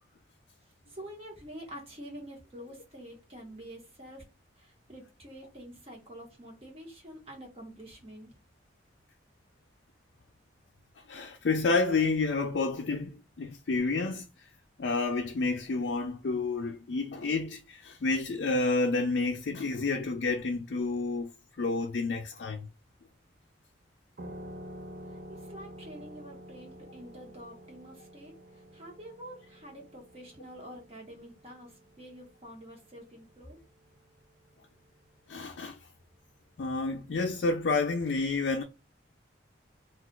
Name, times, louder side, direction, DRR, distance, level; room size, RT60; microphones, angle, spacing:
voice 1, 0.9-4.2 4.6-8.3 25.1-28.3 28.7-33.6, equal, 30° right, 1.1 m, -47 dB
voice 2, 11.1-14.5 14.8-21.3 21.6-22.7 35.3-35.8 36.6-38.6, left 3 dB, 65° left, 0.4 m, -29 dB
sound 1, 24.2-33.4, equal, 50° right, 0.5 m, -49 dB
2.4 x 2.4 x 3.6 m
head